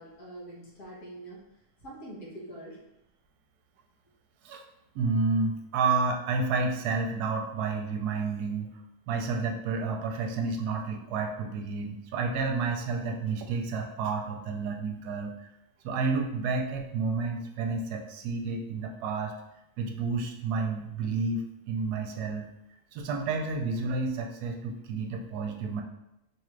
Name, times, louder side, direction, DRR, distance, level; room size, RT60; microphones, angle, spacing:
voice 1, 0.0-1.4 1.8-2.8, right 1 dB, 70° left, -5 dB, 1.6 m, -44 dB
voice 2, 4.9-8.7 9.1-15.5 15.8-19.3 19.8-22.5 22.9-25.8, right 4 dB, 75° right, 3 dB, 1.1 m, -30 dB
4.7 x 2.4 x 3.1 m, 0.89 s
omnidirectional pair, 1.7 m